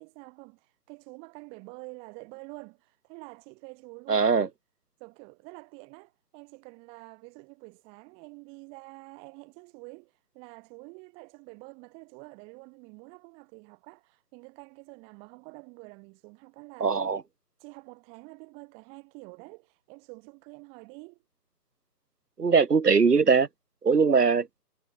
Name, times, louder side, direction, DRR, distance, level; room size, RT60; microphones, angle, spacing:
voice 1, 0.0-4.5 5.0-17.1 17.6-21.2, right 32 dB, 10° right, 3.2 m, -48 dB
voice 2, 4.1-4.5 16.8-17.2 22.4-23.5 23.8-24.5, right 5 dB, 70° right, 1.5 m, -21 dB
figure-of-eight pair, 150°, 49 cm